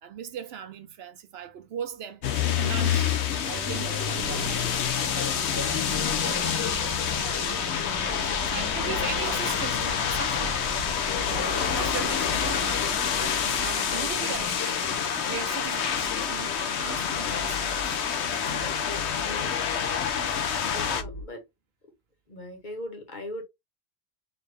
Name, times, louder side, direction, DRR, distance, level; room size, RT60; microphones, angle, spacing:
voice 1, 0.0-3.1 3.5-7.6 8.0-10.7 11.3-14.9 15.2-18.0 18.4-18.8, right 8 dB, 70° right, 0.8 m, -40 dB
sound 1, 2.2-21.0, left 7 dB, 75° left, 1.0 m, -27 dB
sound 2, 4.2-21.2, left 2 dB, 30° left, 0.6 m, -40 dB
voice 2, 8.1-8.5 14.9-15.0 19.2-19.7 20.7-21.4 21.8-21.9 22.3-23.4, left 1 dB, 45° left, 1.3 m, -40 dB
4.1 x 2.6 x 3.3 m
omnidirectional pair, 1.1 m